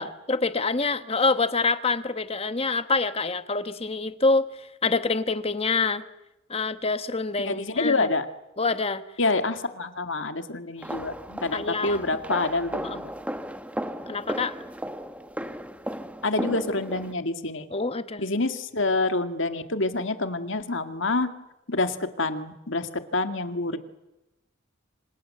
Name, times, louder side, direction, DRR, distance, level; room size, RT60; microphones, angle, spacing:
voice 1, 0.0-4.5 4.8-6.0 6.5-8.1 8.6-9.0 11.5-12.0 12.8-13.0 14.1-14.5 17.7-18.2, left 3 dB, 25° left, 11 dB, 1.2 m, -26 dB
voice 2, 7.4-8.3 9.2-13.1 16.2-17.7 18.2-21.3 21.7-23.8, left 2 dB, 60° left, 8 dB, 2.0 m, -27 dB
sound 1, 10.8-17.1, right 1 dB, 5° right, 1.0 m, -35 dB
27.5 x 26.5 x 7.8 m, 0.95 s
head